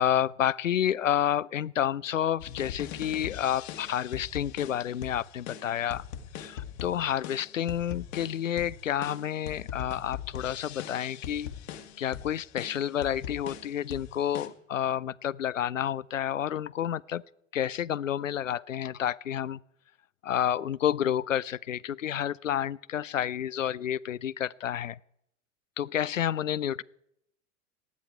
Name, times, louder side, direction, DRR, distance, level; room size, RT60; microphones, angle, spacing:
voice 1, 0.0-6.0 6.3-11.5 12.0-17.2 17.5-19.6 20.2-25.0 25.8-26.8, left 10 dB, 85° left, 0.5 m, -30 dB
sound 1, 2.4-14.5, left 9 dB, 55° left, 1.9 m, -41 dB
18.5 x 13.0 x 4.6 m
figure-of-eight pair, 90°, 38 cm